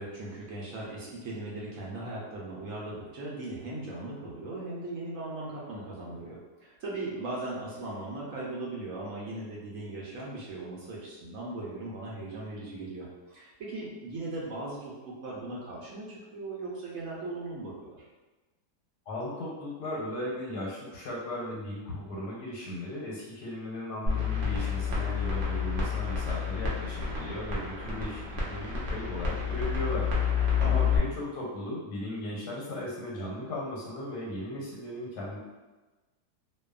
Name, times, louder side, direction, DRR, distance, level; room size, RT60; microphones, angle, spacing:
voice 1, 0.0-18.0 30.6-31.1, right 2 dB, 70° right, -5 dB, 0.9 m, -38 dB
voice 2, 19.1-35.4, left 1 dB, 90° left, -4 dB, 1.2 m, -37 dB
sound 1, 24.1-31.0, left 6 dB, 85° right, 0.4 m, -29 dB
2.6 x 2.2 x 2.3 m, 1.2 s
omnidirectional pair, 1.7 m